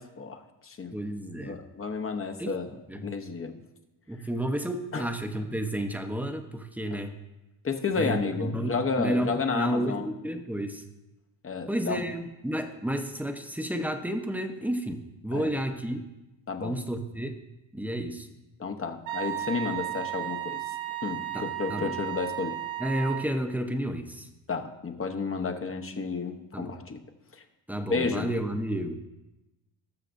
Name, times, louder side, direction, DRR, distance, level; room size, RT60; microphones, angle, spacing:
voice 1, 0.0-0.9 1.4-2.7 3.0-3.5 4.9-5.0 6.9-7.0 7.6-10.1 11.4-12.0 15.3-15.5 16.5-16.8 18.6-20.6 21.0-22.6 24.5-27.0 27.9-28.3, left 4 dB, 30° left, 6 dB, 0.9 m, -31 dB
voice 2, 0.9-1.6 2.4-2.6 2.9-3.1 4.1-7.1 7.9-10.8 11.7-16.0 16.6-17.3 17.7-18.3 21.3-22.0 22.8-24.3 26.5-26.7 27.7-28.9, right 1 dB, 5° right, 5 dB, 0.8 m, -31 dB
Wind instrument woodwind instrument, 19.1-23.3, right 14 dB, 80° right, 1.1 m, -34 dB
19.5 x 6.6 x 2.6 m, 0.99 s
cardioid pair, 105°, 46 cm